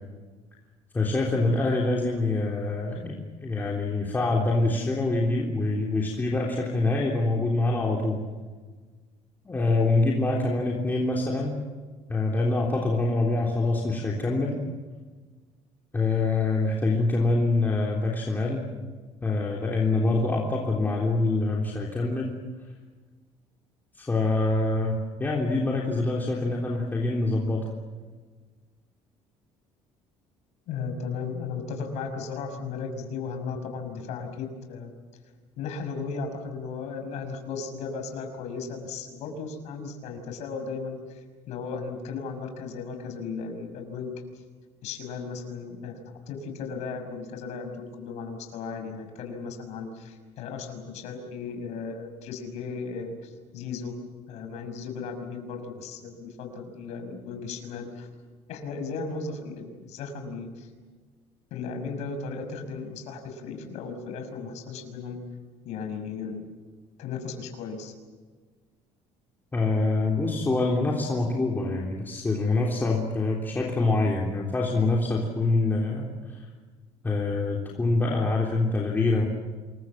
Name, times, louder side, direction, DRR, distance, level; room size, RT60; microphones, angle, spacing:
voice 1, 0.9-8.2 9.4-11.6 12.1-14.6 15.9-18.7 19.2-22.4 23.9-27.7 69.5-76.5 77.0-79.3, left 2 dB, 15° left, -2 dB, 3.5 m, -25 dB
voice 2, 30.7-34.9 35.6-44.1 44.8-46.0 46.3-53.9 54.3-58.1 58.5-60.7 61.5-65.2 65.6-66.5 67.0-67.9, left 5 dB, 75° left, 5 dB, 6.1 m, -36 dB
27.5 x 23.0 x 7.5 m, 1.4 s
cardioid pair, 140°, 12 cm